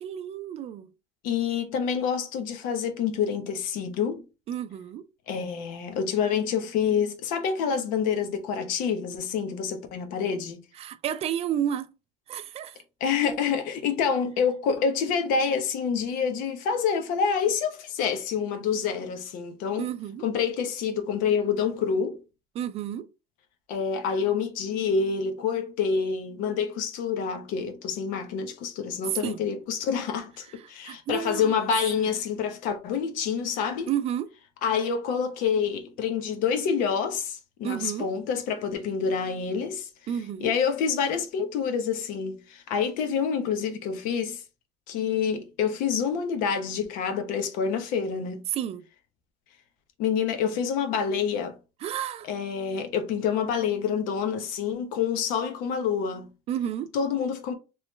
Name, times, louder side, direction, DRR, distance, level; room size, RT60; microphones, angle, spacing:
voice 1, 0.0-0.9 4.5-5.1 10.8-11.9 12.3-12.8 19.8-20.3 22.6-23.1 29.2-29.4 30.9-31.6 33.9-34.3 37.6-38.1 40.1-40.5 48.5-48.8 51.8-52.3 56.5-56.9, right 10 dB, 45° right, 0.4 m, -31 dB
voice 2, 1.2-4.2 5.3-10.6 13.0-19.9 20.2-22.2 23.7-33.9 34.6-39.9 40.4-44.4 44.9-48.4 50.0-51.5 52.3-56.3 56.9-57.5, left 6 dB, 80° left, 0.9 m, -27 dB
3.2 x 3.1 x 3.0 m
cardioid pair, 120°, 14 cm